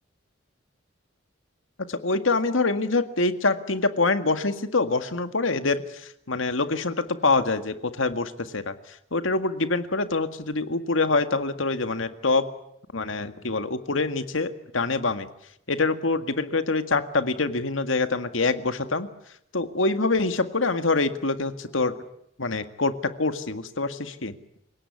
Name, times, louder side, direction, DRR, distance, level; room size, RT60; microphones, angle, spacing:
voice 1, 1.9-8.7 9.1-12.4 12.9-15.3 15.7-19.1 19.5-21.9 22.4-24.3, left 3 dB, 80° left, 10 dB, 1.9 m, -25 dB
29.0 x 17.5 x 9.6 m, 0.76 s
head